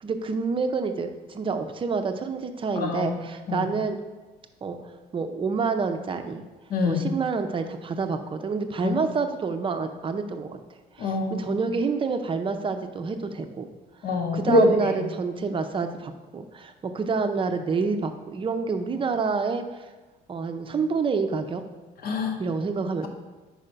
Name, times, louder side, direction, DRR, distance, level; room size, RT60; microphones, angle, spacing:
voice 1, 0.0-4.0 4.6-6.4 6.9-10.6 10.9-13.7 14.3-19.8 20.3-21.6 22.4-23.1, right 4 dB, 30° right, 7 dB, 0.5 m, -28 dB
voice 2, 2.8-3.1 3.5-3.7 6.7-7.1 8.8-9.0 11.0-11.6 14.0-15.0 22.0-22.3, left 2 dB, 60° left, 3 dB, 1.0 m, -24 dB
4.8 x 4.3 x 5.2 m, 1.2 s
cardioid pair, 110°, 17 cm